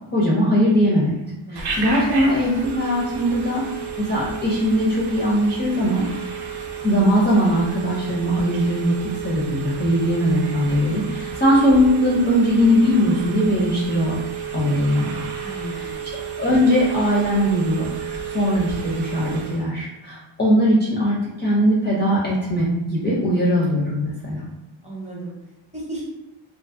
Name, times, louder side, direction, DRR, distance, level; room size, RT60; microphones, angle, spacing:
voice 1, 0.1-1.2 1.5-6.0 6.8-9.0 9.2-14.1 14.5-15.2 15.7-15.9 16.4-17.9 18.3-24.4, equal, 25° left, -6 dB, 0.4 m, -20 dB
voice 2, 1.5-1.8 15.4-16.2 24.8-25.3 25.7-26.1, right 1 dB, 15° right, -5 dB, 0.7 m, -34 dB
Telephone, 1.6-19.7, right 6 dB, 55° right, 0.5 m, -32 dB
2.6 x 2.5 x 2.4 m, 1.0 s
wide cardioid pair, 155°, 47 cm